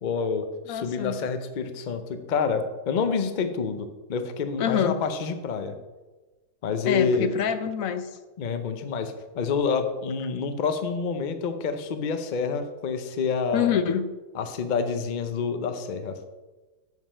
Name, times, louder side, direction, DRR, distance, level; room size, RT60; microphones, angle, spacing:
voice 1, 0.0-5.7 6.6-7.3 8.4-13.7 14.3-16.2, left 5 dB, 90° left, 8 dB, 0.4 m, -28 dB
voice 2, 0.7-1.2 4.6-5.0 6.8-8.1 13.5-14.1, left 8 dB, 65° left, 10 dB, 0.9 m, -26 dB
7.9 x 5.5 x 5.5 m, 1.2 s
omnidirectional pair, 1.8 m